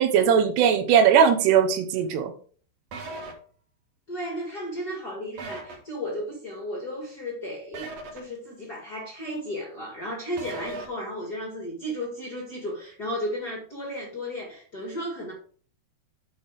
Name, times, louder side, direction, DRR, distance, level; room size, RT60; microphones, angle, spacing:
voice 1, 0.0-2.3, right 8 dB, 80° right, 3.1 m, -19 dB
sound 1, 2.9-3.3 5.4-5.7 7.7-8.2 10.4-10.9, right 3 dB, 50° right, 2.3 m, -37 dB
voice 2, 4.1-15.3, equal, 30° left, 1.9 m, -34 dB
8.7 x 5.7 x 4.9 m
omnidirectional pair, 4.8 m